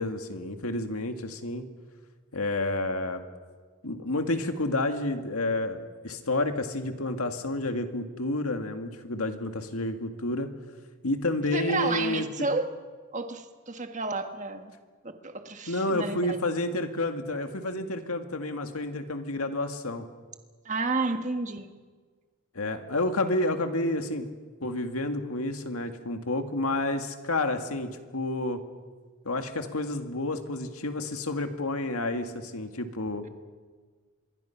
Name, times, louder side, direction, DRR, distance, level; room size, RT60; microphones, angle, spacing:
voice 1, 0.0-1.7 2.3-3.2 3.8-10.5 11.0-12.3 15.7-20.1 22.5-24.3 24.6-28.6 29.2-33.3, left 2 dB, 85° left, 6 dB, 2.1 m, -30 dB
voice 2, 11.5-12.7 13.1-14.7 15.0-16.4 20.6-21.7, right 3 dB, 35° right, 6 dB, 1.5 m, -31 dB
25.5 x 23.0 x 5.9 m, 1.5 s
head